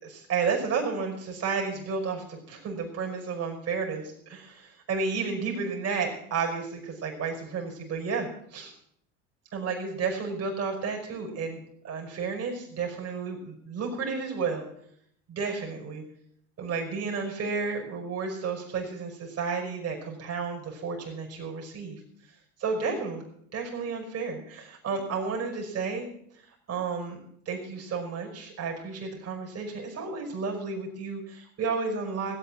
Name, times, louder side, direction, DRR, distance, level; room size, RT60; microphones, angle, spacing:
voice 1, 0.0-8.7 9.5-14.7 15.3-16.0 16.6-22.0 22.6-23.2 23.5-26.1 26.7-27.2 27.5-32.4, right 5 dB, 40° right, 1 dB, 5.3 m, -32 dB
17.0 x 8.4 x 7.5 m, 0.69 s
hypercardioid pair, 85°, 39 cm